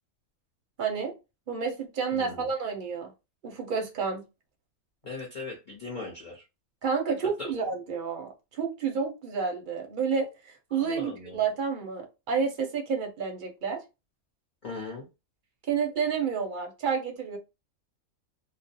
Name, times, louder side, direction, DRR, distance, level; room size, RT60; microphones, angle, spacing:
voice 1, 0.8-1.1 1.5-3.1 3.4-4.2 6.8-13.8 15.7-17.4, right 6 dB, 50° right, 0.6 m, -30 dB
voice 2, 2.1-2.5 5.0-6.4 7.4-7.5 10.8-11.4 14.6-15.1, left 3 dB, 45° left, 0.7 m, -39 dB
2.4 x 2.1 x 2.7 m
omnidirectional pair, 1.4 m